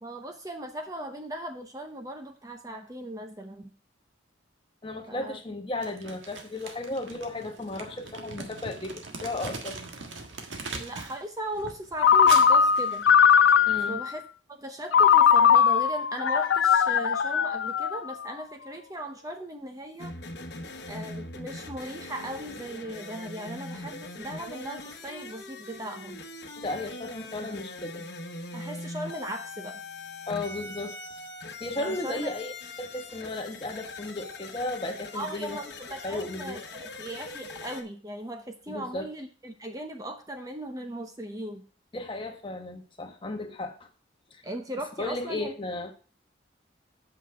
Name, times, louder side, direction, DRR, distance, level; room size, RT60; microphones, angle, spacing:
voice 1, 0.0-3.7 5.1-5.4 10.8-13.0 13.9-14.2 14.5-20.1 20.9-26.2 28.5-29.8 31.8-32.3 35.1-41.6 44.4-45.5, right 1 dB, 20° right, 5 dB, 0.7 m, -38 dB
voice 2, 4.8-8.9 9.2-9.8 13.7-14.0 26.6-28.0 30.3-31.0 31.6-32.5 32.8-35.6 36.0-36.6 38.7-39.1 41.9-43.9 44.3-44.4 45.0-45.9, left 2 dB, 25° left, 5 dB, 1.1 m, -34 dB
Crumpling crinkling, 5.8-11.2 11.5-13.5, right 3 dB, 80° right, 1.5 m, -40 dB
Ringtone, 12.0-14.1 14.9-18.3, left 7 dB, 85° left, 0.5 m, -20 dB
sound 1, 20.0-37.8, left 2 dB, 60° left, 1.1 m, -41 dB
8.2 x 6.0 x 4.7 m, 0.38 s
head